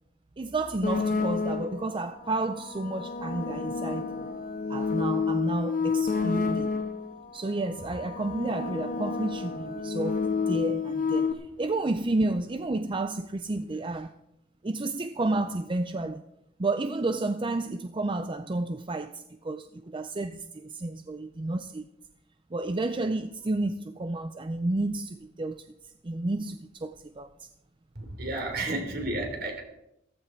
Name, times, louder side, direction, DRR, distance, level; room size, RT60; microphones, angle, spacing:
voice 1, 0.4-4.3 4.7-6.8 7.3-14.1 14.6-16.2 16.6-21.9 22.5-25.7 26.0-27.5 28.6-28.7, right 2 dB, 30° right, 0.5 m, -31 dB
sound 1, 0.8-1.9 2.7-7.2 7.9-11.3, left 5 dB, 50° left, 1.5 m, -29 dB
voice 2, 28.0-29.6, right 2 dB, 60° right, 3.5 m, -32 dB
15.0 x 14.0 x 4.5 m
head